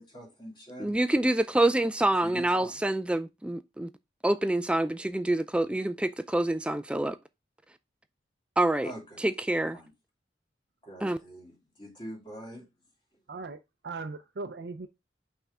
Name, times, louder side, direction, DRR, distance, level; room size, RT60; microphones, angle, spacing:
voice 1, 0.0-1.0 2.1-2.8 8.8-9.3 9.7-9.9 10.8-12.6, equal, 25° left, 2.5 m, -44 dB
voice 2, 0.8-3.9 4.2-7.2 8.6-8.9 9.2-9.8 11.0-11.2, right 1 dB, 5° right, 0.3 m, -26 dB
voice 3, 13.3-14.9, right 3 dB, 65° right, 0.5 m, -39 dB
5.8 x 3.6 x 5.4 m
head